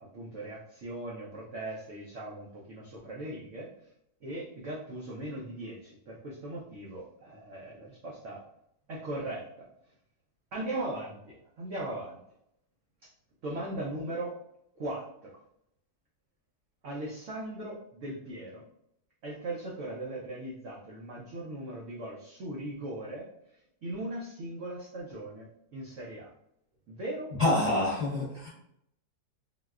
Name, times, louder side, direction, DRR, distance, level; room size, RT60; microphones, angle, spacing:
voice 1, 0.0-3.9 4.2-8.4 8.9-9.4 10.5-12.2 13.4-14.3 14.8-15.4 16.8-18.6 19.2-26.3 26.9-27.3 27.7-27.8, right 1 dB, 80° right, -4 dB, 0.6 m, -39 dB
voice 2, 27.4-28.5, left 2 dB, 30° left, -8 dB, 0.7 m, -26 dB
3.9 x 2.2 x 2.3 m, 0.76 s
omnidirectional pair, 2.0 m